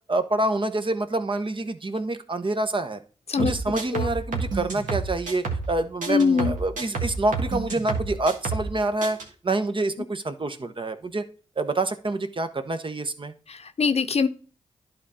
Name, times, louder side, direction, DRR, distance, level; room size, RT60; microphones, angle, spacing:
voice 1, 0.1-3.0 3.4-9.2 9.4-11.2 11.6-13.3, right 2 dB, 40° right, 9 dB, 1.0 m, -27 dB
sound 1, 3.4-5.7 6.0-8.7 9.0-9.2, right 4 dB, 80° right, 1.5 m, -29 dB
voice 2, 6.1-6.5 13.5-14.3, left 5 dB, 55° left, 10 dB, 0.7 m, -22 dB
11.0 x 3.8 x 4.2 m, 0.37 s
cardioid pair, 40°, 13 cm